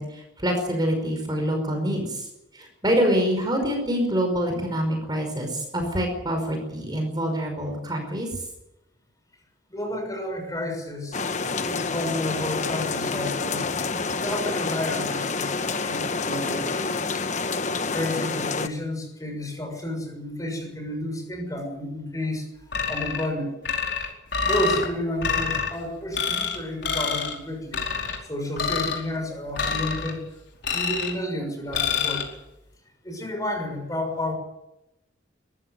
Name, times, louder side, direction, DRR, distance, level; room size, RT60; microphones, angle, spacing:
voice 1, 0.0-2.3 2.5-8.3, equal, 25° right, 3 dB, 5.3 m, -26 dB
voice 2, 9.7-11.2 11.6-13.7 14.2-17.2 17.9-22.4 22.9-23.5 24.4-27.8 28.2-30.2 30.7-32.3 33.0-34.3, left 1 dB, 20° left, 4 dB, 6.5 m, -31 dB
sound 1, 11.1-18.7, left 4 dB, 40° left, 1.2 m, -28 dB
sound 2, 22.7-23.3 23.6-24.9 25.2-25.7 26.1-26.6 26.8-27.3 27.7-28.2 28.6-29.0 29.6-30.1 30.6-31.2 31.7-32.2, left 6 dB, 70° left, 4.7 m, -26 dB
22.5 x 15.0 x 9.6 m, 0.91 s
head